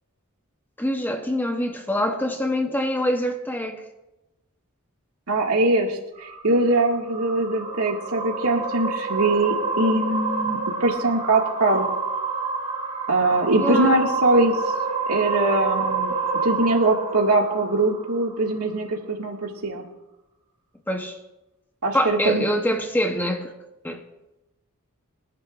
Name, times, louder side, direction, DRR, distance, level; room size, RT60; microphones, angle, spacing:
voice 1, 0.8-3.8 13.6-14.0 20.9-21.2 21.9-23.5 23.8-24.0, equal, 10° left, 1.0 m, -25 dB
voice 2, 5.3-11.9 13.1-14.6 15.1-16.1 16.4-19.8 21.8-22.4, right 2 dB, 80° right, 2.1 m, -22 dB
sound 1, 6.1-18.6, right 4 dB, 30° right, 1.6 m, -28 dB
23.0 x 11.0 x 2.6 m
head